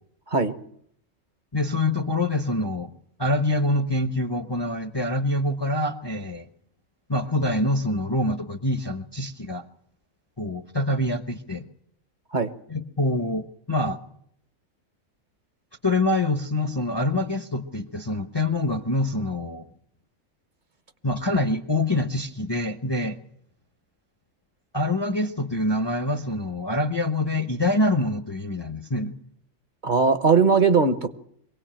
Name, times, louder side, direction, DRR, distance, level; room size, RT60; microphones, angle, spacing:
voice 1, 1.5-2.9 3.2-6.5 7.1-9.6 10.4-11.7 12.7-14.0 15.8-19.6 21.0-23.2 24.7-29.1, left 1 dB, 25° left, 9 dB, 0.8 m, -25 dB
voice 2, 29.8-31.1, right 5 dB, 40° right, 11 dB, 1.1 m, -19 dB
23.5 x 17.5 x 8.9 m, 0.69 s
omnidirectional pair, 1.4 m